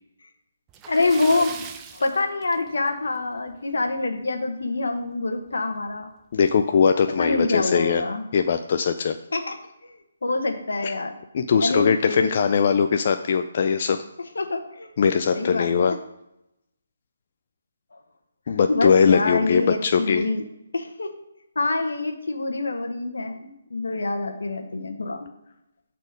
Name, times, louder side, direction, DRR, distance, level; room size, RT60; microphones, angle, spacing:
Splash splatter, 0.7-3.1 3.4-3.5 4.0-4.1 5.5-5.6 5.9-6.0 6.7-6.9, right 7 dB, 15° right, 0.5 m, -40 dB
voice 1, 0.9-1.7 1.9-6.1 7.2-8.2 9.3-9.6 9.8-11.1 11.5-12.3 14.3-14.9 15.3-15.9 17.9-18.0 18.7-20.4 20.7-21.1 21.5-25.3, left 2 dB, 80° left, 5 dB, 1.2 m, -26 dB
voice 2, 6.3-8.0 8.3-9.2 10.8-10.9 11.3-14.0 15.0-15.9 18.5-20.2, left 6 dB, 45° left, 7 dB, 0.4 m, -20 dB
8.1 x 4.2 x 5.0 m, 0.86 s
hypercardioid pair, 160°, 0 cm